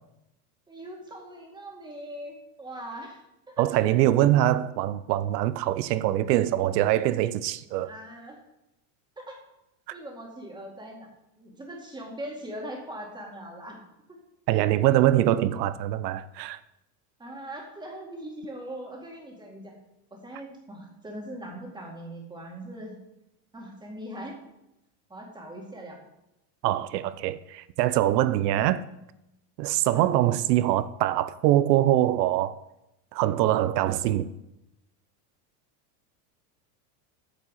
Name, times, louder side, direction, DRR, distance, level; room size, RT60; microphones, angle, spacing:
voice 1, 0.7-3.2 3.5-3.6 7.8-8.4 9.2-9.4 9.9-11.1 11.4-13.8 14.1-14.2 17.2-19.7 20.1-23.0 23.5-24.4 25.1-26.0 29.9-30.1, right 1 dB, 10° right, 2.1 m, -40 dB
voice 2, 3.6-7.9 14.5-16.6 26.6-28.8 29.6-32.6 33.1-34.3, right 13 dB, 90° right, 0.8 m, -23 dB
9.1 x 7.3 x 6.5 m
supercardioid pair, 155°, 47 cm